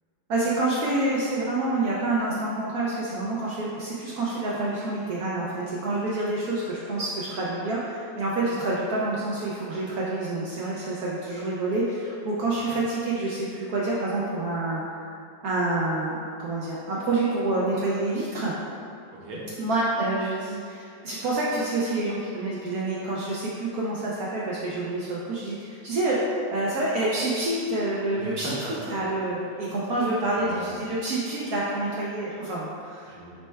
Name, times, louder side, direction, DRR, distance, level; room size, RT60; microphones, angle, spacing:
voice 1, 0.3-14.8 15.1-15.2 15.4-16.1 16.4-18.5 19.6-28.5 28.9-33.1, right 2 dB, 80° right, -6 dB, 0.8 m, -27 dB
voice 2, 12.4-12.7 19.1-19.4 28.2-29.1 29.6-29.7 30.3-30.7 33.0-33.3, right 2 dB, 65° right, -5 dB, 1.2 m, -38 dB
4.1 x 2.2 x 4.4 m, 2.5 s
omnidirectional pair, 2.1 m